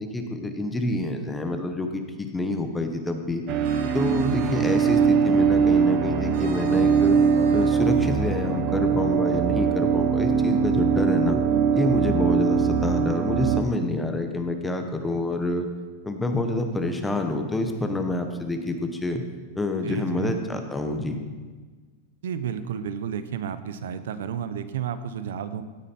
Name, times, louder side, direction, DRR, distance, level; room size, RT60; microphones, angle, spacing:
voice 1, 0.0-3.4 3.9-7.2 7.5-11.4 11.7-15.7 16.0-19.2 19.6-21.2, left 2 dB, 5° left, 5 dB, 0.9 m, -27 dB
sound 1, 3.5-13.6, right 6 dB, 30° right, 0.7 m, -22 dB
sound 2, 3.5-5.1 6.3-7.9, right 6 dB, 60° right, 1.6 m, -43 dB
voice 2, 19.8-20.3 22.2-25.6, right 8 dB, 85° right, 12 dB, 0.9 m, -31 dB
16.0 x 8.9 x 4.4 m, 1.4 s
supercardioid pair, 170°, 0 cm